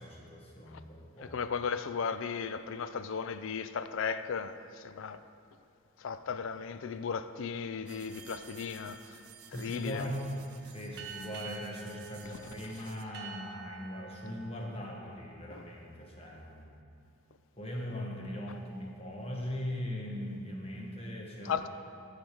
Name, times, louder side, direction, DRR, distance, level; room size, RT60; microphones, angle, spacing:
voice 1, 0.0-1.3 9.5-10.3 10.6-16.7 17.6-21.7, equal, 25° left, 1.1 m, -40 dB
voice 2, 1.2-5.2 6.0-9.2 9.5-10.1 12.8-12.9 15.5-15.6 21.4-21.7, left 6 dB, 60° left, 0.3 m, -36 dB
sound 1, 7.9-13.0, right 9 dB, 75° right, 0.4 m, -54 dB
sound 2, 11.0-16.1, right 6 dB, 50° right, 1.0 m, -48 dB
13.5 x 5.1 x 4.5 m
head